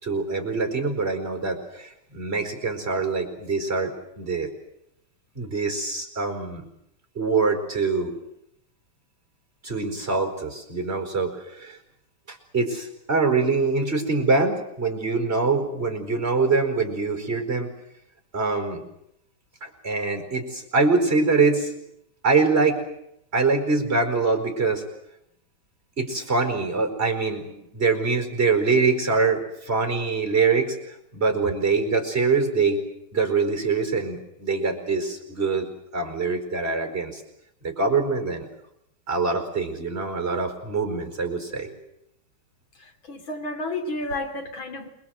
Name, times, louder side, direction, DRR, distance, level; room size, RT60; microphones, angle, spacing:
voice 1, 0.0-4.5 5.3-6.6 7.1-8.2 9.6-11.8 12.3-17.7 18.3-18.8 19.6-21.7 22.2-22.8 23.3-24.8 26.0-30.8 31.1-32.8 33.1-37.2 37.6-38.5 39.1-41.8, right 4 dB, 30° right, 6 dB, 5.0 m, -24 dB
voice 2, 42.8-44.9, left 2 dB, 65° left, 5 dB, 3.8 m, -31 dB
28.5 x 21.5 x 7.9 m, 0.78 s
omnidirectional pair, 2.3 m